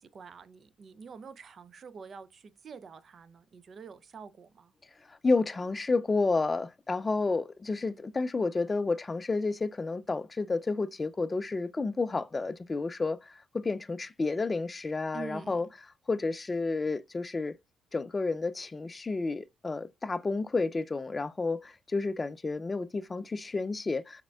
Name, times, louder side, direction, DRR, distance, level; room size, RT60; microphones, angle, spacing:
voice 1, 0.0-4.7 15.1-15.6, right 5 dB, 50° right, 0.5 m, -47 dB
voice 2, 5.1-15.7 16.1-17.6 17.9-24.2, left 3 dB, 25° left, 0.4 m, -30 dB
4.9 x 4.3 x 2.3 m
cardioid pair, 90°, 0 cm